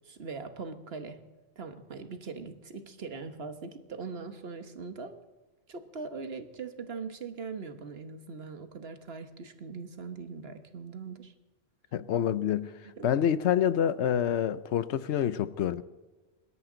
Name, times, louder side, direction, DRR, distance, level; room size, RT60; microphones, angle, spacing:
voice 1, 0.0-1.2 1.6-5.2 5.7-11.3 13.0-13.1, right 4 dB, 60° right, 1.5 m, -41 dB
voice 2, 11.9-12.7 13.0-15.8, left 9 dB, 80° left, 1.0 m, -27 dB
24.5 x 12.5 x 3.9 m
omnidirectional pair, 1.2 m